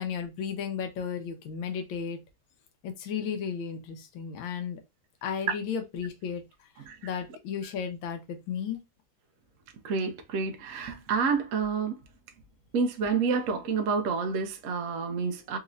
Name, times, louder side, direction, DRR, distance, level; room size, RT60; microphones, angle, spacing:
voice 1, 0.0-2.2 2.8-4.8 5.2-6.7 7.0-8.8, left 7 dB, 80° left, 1.5 m, -34 dB
voice 2, 9.8-12.0 12.7-15.6, right 5 dB, 75° right, 0.7 m, -28 dB
4.1 x 2.9 x 2.6 m
omnidirectional pair, 2.2 m